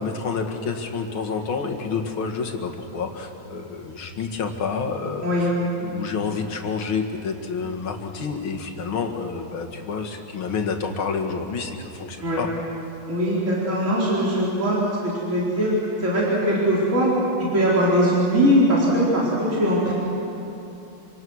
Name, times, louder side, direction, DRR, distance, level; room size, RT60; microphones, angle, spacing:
voice 1, 0.0-5.5 5.8-12.5, left 5 dB, 85° left, 3 dB, 2.7 m, -29 dB
voice 2, 13.1-15.7 16.0-17.1 17.4-19.9, equal, 35° right, -7 dB, 4.6 m, -21 dB
26.0 x 25.5 x 6.4 m, 2.9 s
omnidirectional pair, 2.2 m